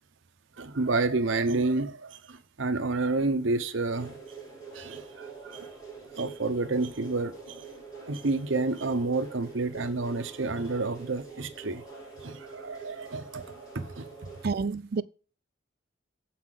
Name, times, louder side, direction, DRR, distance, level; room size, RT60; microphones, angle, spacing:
voice 1, 0.6-4.2 4.7-5.7 6.2-7.6 8.1-11.8 12.2-14.1, right 3 dB, 75° right, 0.9 m, -29 dB
sound 1, 3.9-14.4, right 4 dB, 20° left, 5.5 m, -45 dB
voice 2, 14.4-15.0, right 4 dB, 50° right, 0.4 m, -29 dB
7.3 x 5.8 x 7.6 m
head